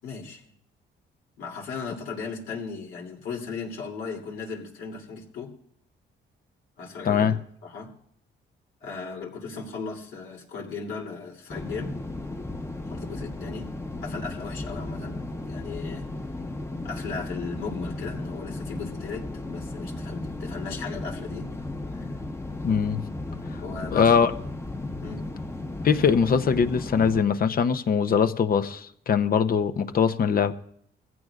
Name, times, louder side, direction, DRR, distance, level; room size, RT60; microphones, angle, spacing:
voice 1, 0.0-0.5 1.4-5.5 6.8-7.3 7.6-7.9 8.8-11.9 12.9-13.7 14.0-16.1 16.8-21.5 21.9-22.1 23.6-24.1 25.0-25.3, left 5 dB, 80° left, 3.0 m, -37 dB
voice 2, 7.0-7.4 22.6-23.0 23.9-24.3 25.8-30.5, left 6 dB, 45° left, 0.8 m, -22 dB
sound 1, 11.5-27.2, left 2 dB, 15° left, 1.0 m, -35 dB
21.5 x 15.5 x 2.5 m
cardioid pair, 90°, 20 cm